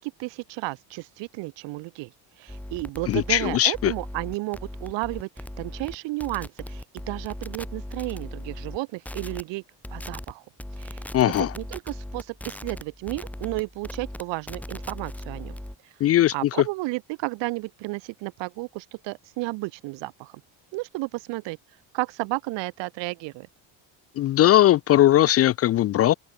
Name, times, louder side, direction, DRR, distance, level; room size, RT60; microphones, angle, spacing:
voice 1, 0.0-2.1 2.4-9.6 9.9-10.4 10.8-11.0 11.6-15.5 16.3-20.3 20.7-21.6 21.9-23.5, right 23 dB, 80° right, 2.6 m, -32 dB
sound 1, 2.5-8.8 9.1-9.4 9.8-10.3 10.6-15.8, left 1 dB, 5° left, 4.8 m, -38 dB
voice 2, 3.1-3.9 11.1-11.5 16.0-16.5 24.2-26.1, left 13 dB, 35° left, 0.4 m, -19 dB
cardioid pair, 140°, 43 cm